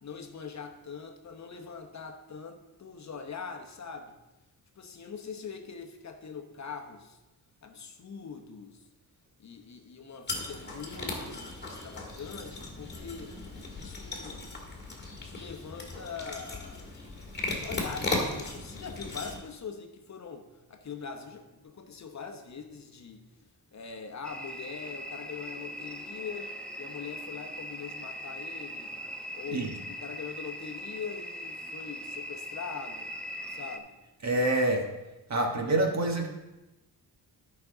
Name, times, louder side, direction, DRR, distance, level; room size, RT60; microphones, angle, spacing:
voice 1, 0.0-4.2 4.8-7.2 7.6-8.8 9.4-13.3 13.8-14.5 15.2-16.9 17.6-23.3 23.7-26.5 26.8-28.9 29.3-33.2 33.5-34.0, left 5 dB, 45° left, 5 dB, 0.9 m, -42 dB
sound 1, 10.3-19.4, left 2 dB, 25° left, 2.0 m, -37 dB
sound 2, 24.2-33.8, equal, 5° left, 0.8 m, -41 dB
voice 2, 34.2-34.9 35.3-36.3, right 2 dB, 45° right, 2 dB, 1.5 m, -26 dB
12.5 x 6.0 x 3.9 m, 1.0 s
wide cardioid pair, 115°, 39 cm